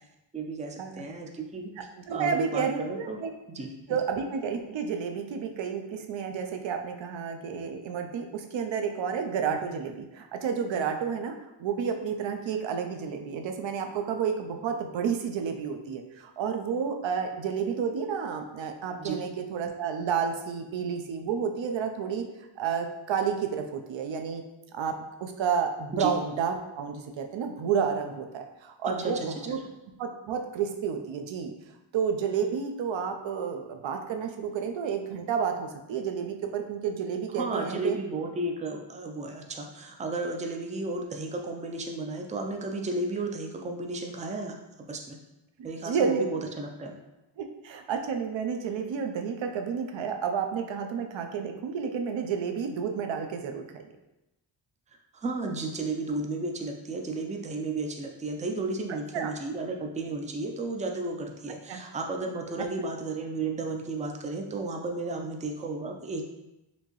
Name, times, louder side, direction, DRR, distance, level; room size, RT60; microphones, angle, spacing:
voice 1, 0.3-1.7 2.1-3.2 3.5-4.0 19.0-19.2 25.9-26.1 28.9-29.3 37.4-44.6 44.9-45.2 45.6-47.0 55.1-66.3, right 2 dB, 15° right, 2 dB, 0.3 m, -33 dB
voice 2, 2.1-3.3 3.9-22.3 22.6-24.4 24.7-29.6 30.0-31.5 31.9-38.0 45.6-46.2 47.4-53.8 59.1-59.3 61.7-61.8 62.6-62.7, right 6 dB, 70° right, 5 dB, 0.6 m, -31 dB
4.3 x 2.7 x 3.0 m, 0.95 s
wide cardioid pair, 125°, 47 cm